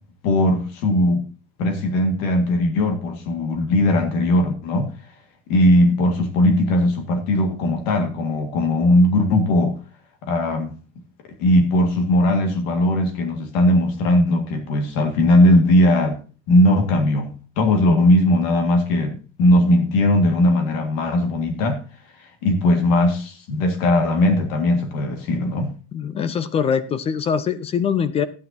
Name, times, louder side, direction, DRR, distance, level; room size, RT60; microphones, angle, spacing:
voice 1, 0.2-1.2 1.6-4.9 5.5-9.8 10.2-10.7 11.4-16.2 16.5-21.8 22.2-25.7, left 1 dB, 85° left, 5 dB, 1.9 m, -18 dB
voice 2, 25.9-28.3, left 7 dB, 20° left, 15 dB, 0.4 m, -23 dB
13.0 x 9.5 x 2.7 m, 0.35 s
cardioid pair, 180°, 29 cm